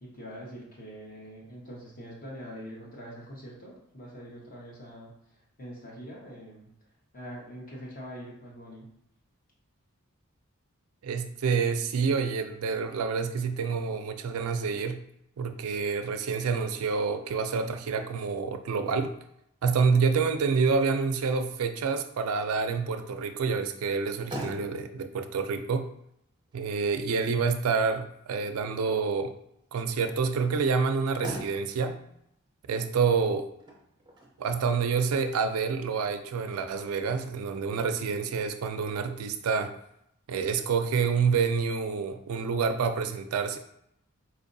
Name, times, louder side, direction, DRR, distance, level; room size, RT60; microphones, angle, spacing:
voice 1, 0.0-5.1 5.6-6.7 7.1-8.9, equal, 40° left, -3 dB, 1.0 m, -43 dB
voice 2, 11.0-15.0 15.4-19.1 19.6-25.9 26.5-29.3 29.7-32.0 32.7-33.4 34.4-39.7 40.3-43.6, right 5 dB, 75° right, 7 dB, 0.4 m, -28 dB
Motor vehicle (road), 23.9-36.9, right 1 dB, 20° right, 0.6 m, -46 dB
4.3 x 2.6 x 2.6 m, 0.76 s
head